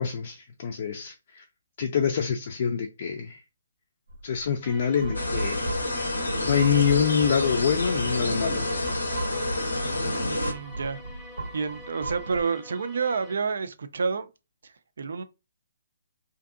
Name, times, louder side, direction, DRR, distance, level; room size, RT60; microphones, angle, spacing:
voice 1, 0.0-1.4 1.8-3.4 4.2-5.8 6.4-8.7, left 7 dB, 50° left, 0.4 m, -26 dB
sound 1, 4.1-8.0 8.5-12.4, right 2 dB, 85° right, 0.8 m, -38 dB
sound 2, 4.6-13.3, equal, 10° left, 0.7 m, -47 dB
sound 3, 5.1-10.5, left 2 dB, 90° left, 0.6 m, -28 dB
voice 2, 10.2-11.0 11.5-14.3 14.6-15.2, right 5 dB, 65° right, 0.4 m, -29 dB
2.5 x 2.5 x 2.4 m
figure-of-eight pair, 140°, 0 cm